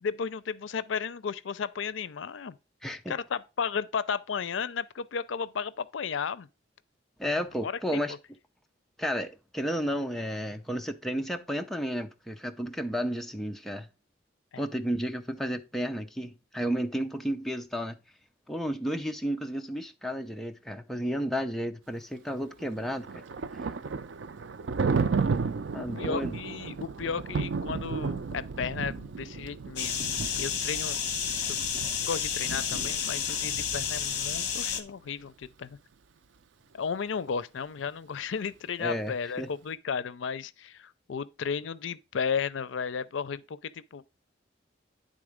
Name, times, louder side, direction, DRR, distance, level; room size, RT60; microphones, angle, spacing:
voice 1, 0.0-2.6 3.1-6.5 7.6-7.8 14.5-14.6 25.8-31.0 32.0-35.8 36.7-44.1, left 6 dB, 85° left, 0.5 m, -34 dB
voice 2, 2.8-3.1 7.2-8.1 9.0-13.9 14.6-18.0 18.5-23.2 25.7-26.4 38.8-39.5, equal, ahead, 0.5 m, -32 dB
Thunder, 22.6-34.4, right 5 dB, 75° right, 0.5 m, -33 dB
sound 1, 29.8-34.8, left 7 dB, 55° left, 1.1 m, -31 dB
9.8 x 3.7 x 5.0 m
head